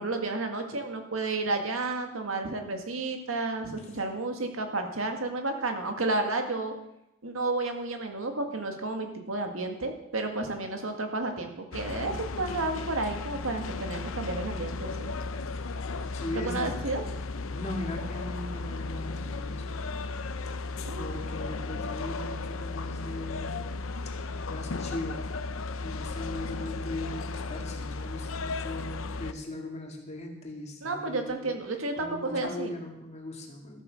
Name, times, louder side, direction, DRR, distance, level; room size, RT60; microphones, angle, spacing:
voice 1, 0.0-6.7 7.2-15.1 16.3-17.1 20.8-21.1 30.8-32.7, right 2 dB, 85° right, 4 dB, 1.9 m, -31 dB
sound 1, 11.7-29.3, left 3 dB, 90° left, 0.7 m, -35 dB
voice 2, 16.1-16.8 17.5-19.7 20.9-23.7 24.5-25.3 25.8-31.5 32.0-33.8, left 1 dB, 35° left, 1 dB, 2.4 m, -39 dB
13.5 x 8.5 x 6.4 m, 0.87 s
head